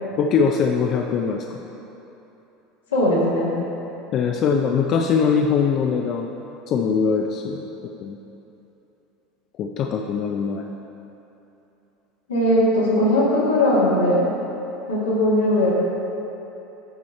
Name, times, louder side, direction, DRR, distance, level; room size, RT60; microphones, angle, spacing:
voice 1, 0.2-1.6 4.1-6.3 6.7-7.6 8.0-8.2 9.6-10.6, left 6 dB, 50° left, 2 dB, 0.4 m, -22 dB
voice 2, 2.9-3.5 12.3-14.3 14.9-15.7, left 1 dB, 85° left, -5 dB, 1.6 m, -19 dB
8.1 x 4.8 x 4.3 m, 3.0 s
hypercardioid pair, 80°, 0 cm